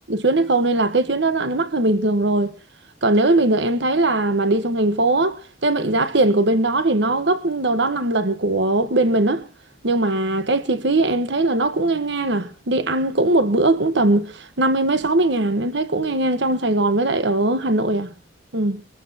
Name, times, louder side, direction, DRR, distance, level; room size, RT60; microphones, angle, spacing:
voice 1, 0.1-2.5 3.0-9.5 9.8-18.1 18.5-18.8, right 2 dB, 65° right, 1.3 m, -20 dB
24.0 x 14.5 x 2.9 m
head